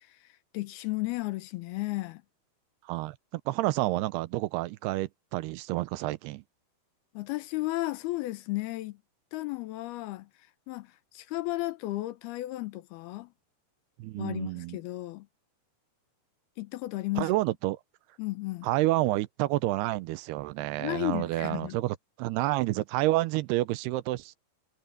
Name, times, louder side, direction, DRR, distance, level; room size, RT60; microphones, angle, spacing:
voice 1, 0.5-2.2 7.1-9.0 9.3-10.3 10.7-10.9 11.1-13.3 14.2-15.3 16.6-17.3 18.2-18.7 20.8-21.8, left 19 dB, 80° left, 2.7 m, -33 dB
voice 2, 2.8-6.4 14.0-14.8 17.2-17.8 18.6-24.4, right 18 dB, 85° right, 2.7 m, -29 dB
omnidirectional pair, 4.7 m